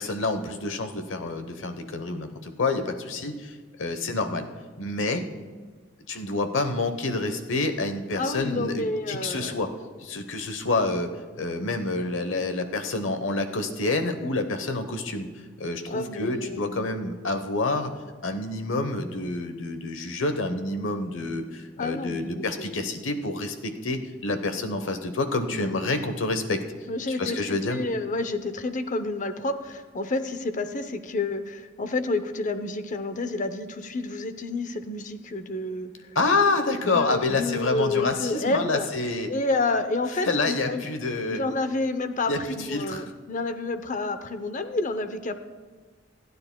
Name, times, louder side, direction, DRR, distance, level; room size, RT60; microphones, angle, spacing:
voice 1, 0.0-3.5 3.8-4.4 4.8-5.2 6.1-9.7 10.0-11.1 11.4-15.3 15.6-17.9 18.2-26.6 27.2-27.8 36.1-39.3 40.2-41.4 42.3-42.4 42.7-43.0, left 3 dB, 90° left, 8 dB, 1.0 m, -28 dB
voice 2, 8.2-9.6 15.9-16.9 21.8-22.9 25.5-25.9 26.9-36.1 36.8-38.9 39.3-40.9 41.3-45.3, left 2 dB, 40° left, 10 dB, 0.7 m, -29 dB
28.0 x 9.7 x 2.2 m, 1.4 s
head